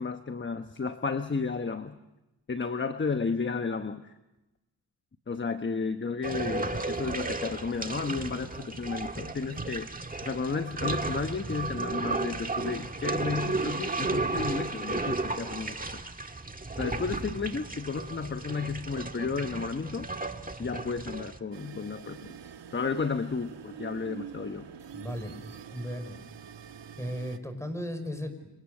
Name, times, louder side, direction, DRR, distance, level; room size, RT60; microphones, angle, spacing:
voice 1, 0.0-2.0 2.5-4.0 5.3-9.9 10.2-16.0 16.8-20.1 20.6-22.3 22.7-24.7, left 4 dB, 25° left, 8 dB, 1.1 m, -32 dB
sound 1, 6.2-21.4, right 3 dB, 20° right, 1.6 m, -34 dB
sound 2, 21.5-27.4, right 7 dB, 75° right, 1.5 m, -45 dB
voice 2, 24.9-25.3 25.7-26.2 27.0-28.5, equal, 5° left, 8 dB, 5.1 m, -36 dB
29.5 x 26.0 x 6.6 m, 0.99 s
cardioid pair, 90°, 43 cm